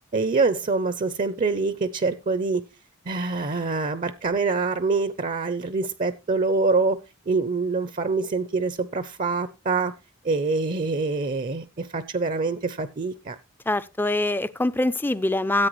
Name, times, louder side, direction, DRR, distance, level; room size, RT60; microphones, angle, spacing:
voice 1, 0.1-2.6 3.1-7.0 7.3-9.9 10.2-13.4, right 3 dB, 40° right, 0.6 m, -25 dB
voice 2, 13.7-15.7, left 2 dB, 10° left, 0.4 m, -24 dB
14.0 x 8.4 x 3.1 m
head